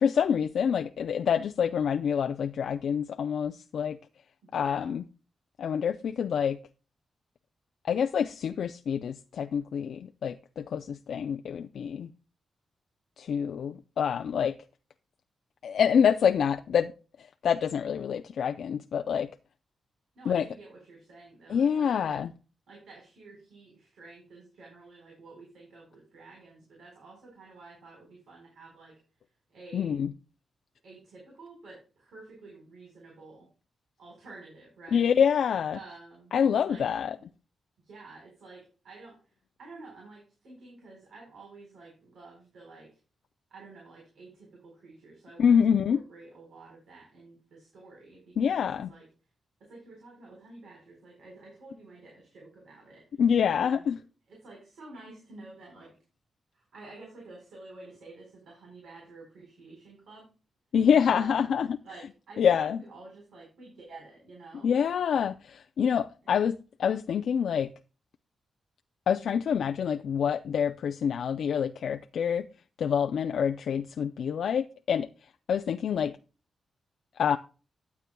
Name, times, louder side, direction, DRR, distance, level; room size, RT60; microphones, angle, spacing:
voice 1, 0.0-4.0 4.5-5.0 5.6-6.6 7.8-12.1 13.2-14.5 15.6-16.9 17.4-19.3 20.3-20.5 21.5-22.3 29.7-30.1 34.9-35.8 36.3-37.2 45.4-46.0 48.4-48.9 53.2-54.0 60.7-61.8 62.4-62.8 64.6-67.7 69.1-72.5 72.8-75.1 75.5-76.1 77.2-77.4, left 7 dB, 75° left, 0.4 m, -26 dB
voice 2, 4.4-4.9 20.1-22.2 22.7-28.9 29.5-30.0 30.8-33.5 34.0-35.1 35.7-36.3 36.6-36.8 37.8-43.0 43.5-49.0 49.6-53.2 53.5-53.9 54.3-56.0 56.5-60.3 61.1-61.6 61.8-64.7 66.2-66.3, right 3 dB, 80° right, 4.3 m, -50 dB
12.0 x 8.2 x 2.2 m
cardioid pair, 90°, 0 cm